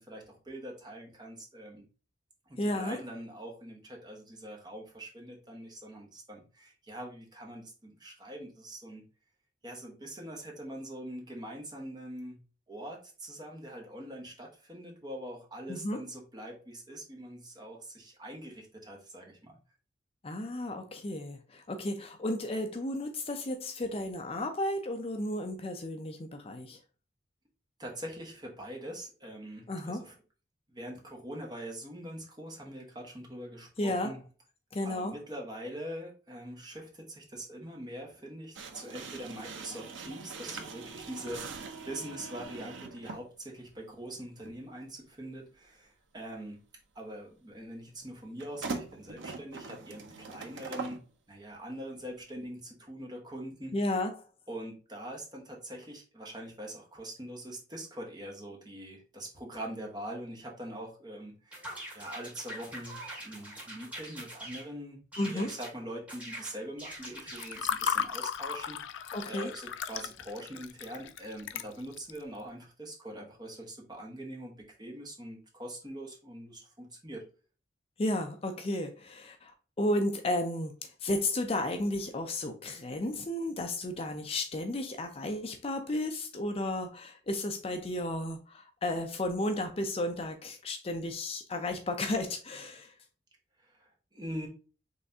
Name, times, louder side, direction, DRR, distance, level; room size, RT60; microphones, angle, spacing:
voice 1, 0.0-1.8 2.5-9.0 9.6-12.4 12.7-19.6 27.8-30.1 30.7-34.2 34.8-46.6 46.9-51.0 51.3-53.7 54.5-61.6 61.9-69.0 69.3-74.5 74.8-77.2 93.6-94.5, right 1 dB, 25° right, 1.2 m, -43 dB
voice 2, 2.6-3.0 15.7-16.0 20.2-26.8 29.7-30.0 33.8-34.1 34.7-35.1 53.7-54.1 65.2-65.5 69.1-69.5 78.0-79.5 79.8-92.9, left 1 dB, 30° left, 0.5 m, -33 dB
sound 1, 38.6-43.3 44.4-44.6 48.4-51.0, right 4 dB, 80° right, 0.7 m, -42 dB
sound 2, 61.5-64.7 65.1-65.7 66.1-67.7, right 1 dB, 5° right, 2.3 m, -44 dB
Water / Fill (with liquid), 67.0-72.2, left 7 dB, 85° left, 0.4 m, -35 dB
5.5 x 3.4 x 2.7 m
head